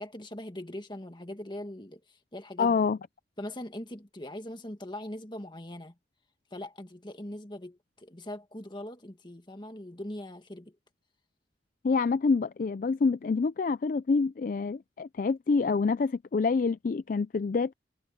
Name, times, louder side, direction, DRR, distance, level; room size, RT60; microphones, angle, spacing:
voice 1, 0.0-2.8 3.4-5.9 6.5-10.8, left 1 dB, 25° left, 1.8 m, -41 dB
voice 2, 2.6-3.0 11.8-17.7, left 4 dB, 45° left, 0.4 m, -27 dB
head